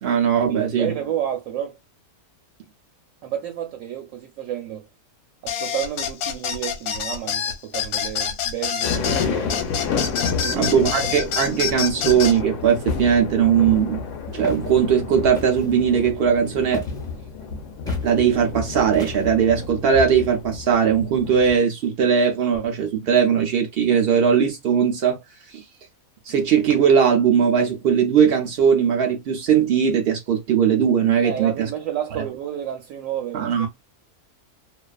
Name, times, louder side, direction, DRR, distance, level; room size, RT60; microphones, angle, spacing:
voice 1, 0.0-0.9 10.5-14.0 14.3-16.8 18.0-25.2 25.5-25.6 26.2-31.7 33.3-33.7, right 7 dB, 85° right, 0.5 m, -19 dB
voice 2, 0.6-1.8 3.2-4.9 5.4-9.7 10.4-10.8 31.2-33.7, right 10 dB, 70° right, 0.9 m, -30 dB
sound 1, 5.5-12.4, left 8 dB, 90° left, 1.1 m, -27 dB
sound 2, 8.8-21.6, left 6 dB, 65° left, 0.8 m, -30 dB
Walk footsteps, 14.4-14.7 15.3-15.7 16.7-17.1 17.9-18.1 18.9-19.4, equal, 5° left, 0.4 m, -33 dB
2.5 x 2.3 x 2.3 m
omnidirectional pair, 1.6 m